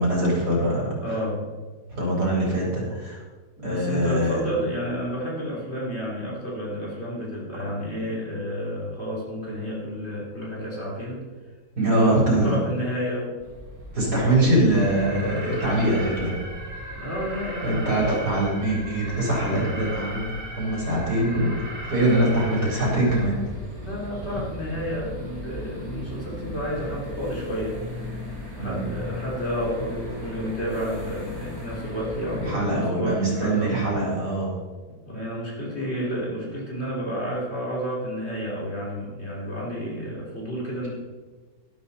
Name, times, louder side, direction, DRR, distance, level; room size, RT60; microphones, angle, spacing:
voice 1, 0.0-0.9 1.9-3.2 3.6-4.4 11.8-12.6 13.9-16.3 17.6-20.3 20.6-21.6 21.9-23.4 28.6-28.8 32.3-34.5, right 1 dB, 70° right, -4 dB, 4.5 m, -23 dB
voice 2, 1.0-1.4 3.6-11.2 11.8-13.4 13.9-14.4 17.0-18.2 22.0-22.3 23.7-27.8 28.6-33.7 34.9-40.9, equal, 40° left, -4 dB, 3.6 m, -31 dB
sound 1, 13.4-32.5, left 2 dB, 20° right, 3.5 m, -38 dB
Alarm, 14.8-23.3, right 2 dB, 50° right, 2.4 m, -38 dB
12.0 x 12.0 x 4.2 m, 1.4 s
omnidirectional pair, 1.7 m